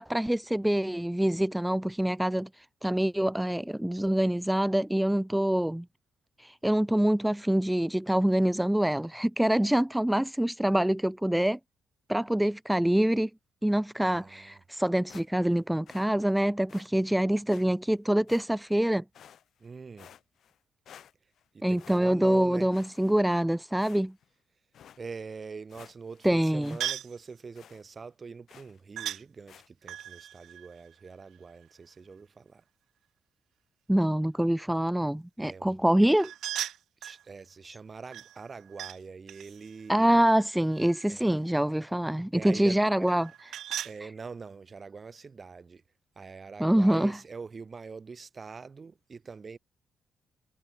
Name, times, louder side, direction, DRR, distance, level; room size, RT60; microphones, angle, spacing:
voice 1, 0.0-5.9 6.4-11.6 12.1-13.3 13.6-19.0 21.6-24.1 26.2-26.8 33.9-36.3 37.6-37.8 39.9-43.6 44.0-44.1 46.6-47.2, right 1 dB, 5° right, 0.5 m, -25 dB
voice 2, 14.0-14.6 19.6-20.1 21.5-22.7 25.0-32.6 35.4-35.8 37.0-40.3 41.1-41.4 42.3-42.8 43.8-45.8 46.2-49.6, right 5 dB, 35° right, 3.7 m, -44 dB
sound 1, 15.1-15.6 15.9-16.1 16.7-16.9 17.5-17.7 18.3-18.7 19.1-19.7 20.0-20.6 20.9-21.4 21.8-22.4 22.7-23.4 23.8-24.3 24.7-25.0 25.4-25.5 25.7-26.3 26.6-26.8 27.1-27.2 27.5-27.8 28.5-28.8 29.5-29.7, left 9 dB, 65° left, 4.1 m, -53 dB
sound 2, 26.8-27.2 29.0-29.2 29.8-31.6 36.2-37.2 38.1-39.0 39.3-41.2 43.0-44.0, right 11 dB, 75° right, 0.9 m, -38 dB
cardioid pair, 90°, 0 cm